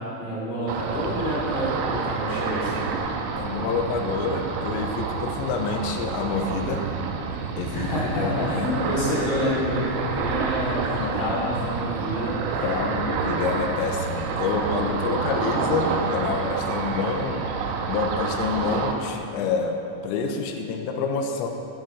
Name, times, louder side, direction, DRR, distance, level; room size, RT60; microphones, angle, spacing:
voice 1, 0.2-2.9 7.7-12.8, equal, 50° left, -7 dB, 4.4 m, -28 dB
Ocean, 0.7-18.9, right 5 dB, 85° right, 3.4 m, -28 dB
voice 2, 3.4-6.8 7.6-7.9 8.2-8.5 11.0-11.5 12.6-17.4 17.9-19.8 20.0-21.5, left 5 dB, 85° left, 3 dB, 3.5 m, -27 dB
11.5 x 11.0 x 4.6 m, 2.9 s
omnidirectional pair, 5.9 m